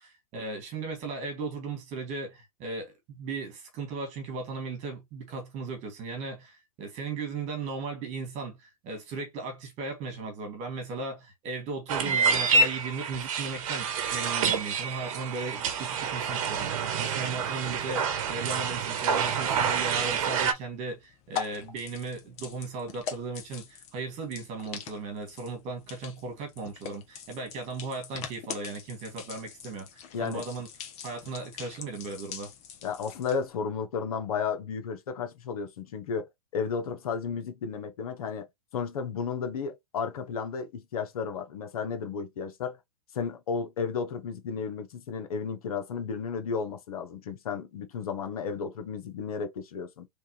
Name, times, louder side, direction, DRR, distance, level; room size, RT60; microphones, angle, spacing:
voice 1, 0.3-30.7 31.0-32.5, right 3 dB, 35° right, 1.9 m, -37 dB
sound 1, 11.9-20.5, right 5 dB, 60° right, 1.0 m, -28 dB
sound 2, 20.5-33.5, left 8 dB, 35° left, 1.0 m, -43 dB
voice 2, 30.1-30.4 32.8-38.5 38.7-42.8 43.1-50.1, left 6 dB, 75° left, 1.0 m, -33 dB
3.4 x 3.2 x 3.1 m
hypercardioid pair, 125°, 19 cm